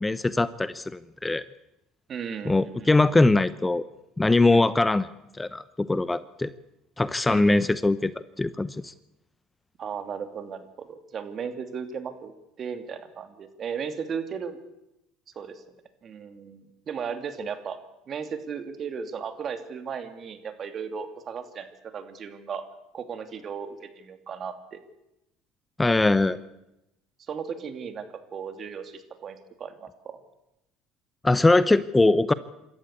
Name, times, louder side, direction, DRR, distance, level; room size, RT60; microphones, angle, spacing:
voice 1, 0.0-1.4 2.5-3.8 4.2-5.1 5.4-6.5 7.0-8.1 8.4-8.9 25.8-26.4 31.2-32.3, left 2 dB, 15° left, 16 dB, 0.7 m, -21 dB
voice 2, 2.1-2.9 4.5-4.7 7.3-7.7 9.8-12.3 12.6-14.6 15.3-15.6 16.0-17.8 18.1-22.6 22.9-24.8 27.3-28.1 28.3-30.2, right 6 dB, 45° right, 8 dB, 2.7 m, -36 dB
26.5 x 13.5 x 8.3 m, 0.91 s
hypercardioid pair, 75°, 0 cm